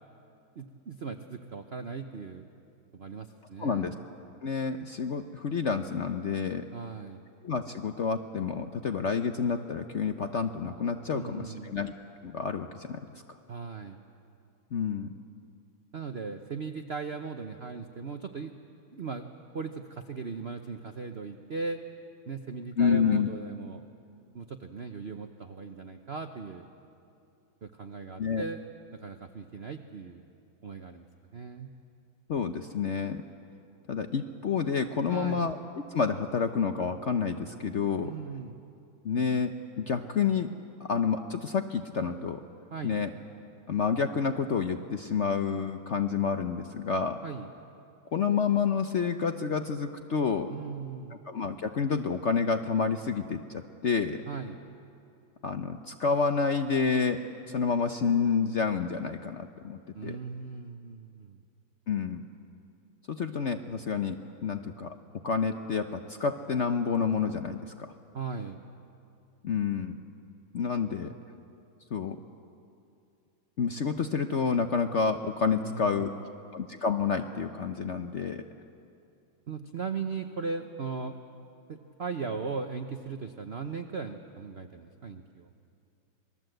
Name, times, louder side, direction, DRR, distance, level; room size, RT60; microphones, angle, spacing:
voice 1, 0.6-2.4 2.9-3.9 6.7-7.2 11.1-11.8 13.5-14.0 15.9-18.5 18.9-19.3 19.5-21.8 22.3-23.8 24.3-26.6 27.6-28.6 28.9-30.2 30.6-31.1 31.3-31.7 35.1-35.4 38.0-38.6 42.7-43.0 47.2-47.5 50.5-51.2 54.3-54.6 59.9-61.4 68.1-68.6 75.6-76.2 79.5-81.2 81.7-85.5, right 4 dB, 45° right, 6 dB, 0.8 m, -38 dB
voice 2, 3.6-3.9 4.4-6.6 7.4-11.9 12.2-13.0 14.7-15.1 22.8-23.3 28.2-28.4 32.3-33.2 33.9-38.1 39.0-40.5 40.8-42.4 42.8-43.1 43.7-47.2 48.1-50.5 51.3-54.2 55.4-57.2 57.5-60.1 61.9-62.3 63.1-64.2 64.4-64.9 65.2-67.9 69.4-70.0 70.5-71.1 71.9-72.2 73.6-76.1 76.5-78.4, left 5 dB, 60° left, 7 dB, 0.8 m, -29 dB
27.0 x 20.5 x 7.9 m, 2.5 s
omnidirectional pair, 2.1 m